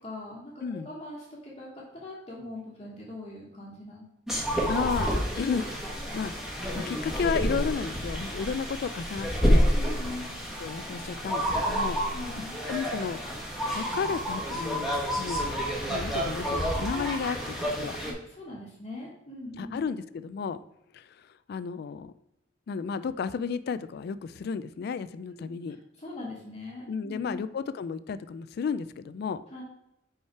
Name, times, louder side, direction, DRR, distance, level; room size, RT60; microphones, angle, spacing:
voice 1, 0.0-4.0 4.3-4.7 9.7-10.4 12.1-12.6 18.0-19.8 25.3-25.4 26.0-27.4 29.5-29.6, left 2 dB, 30° left, -8 dB, 1.3 m, -41 dB
sound 1, 4.3-18.1, equal, ahead, 1.3 m, -29 dB
voice 2, 4.7-5.1 5.4-5.7 6.1-6.3 6.7-9.7 10.6-12.0 12.7-13.2 13.7-15.6 15.9-18.0 19.6-20.6 20.9-22.1 22.7-25.8 26.9-29.4, left 6 dB, 55° left, 14 dB, 0.3 m, -33 dB
5.5 x 4.9 x 4.5 m, 0.85 s
head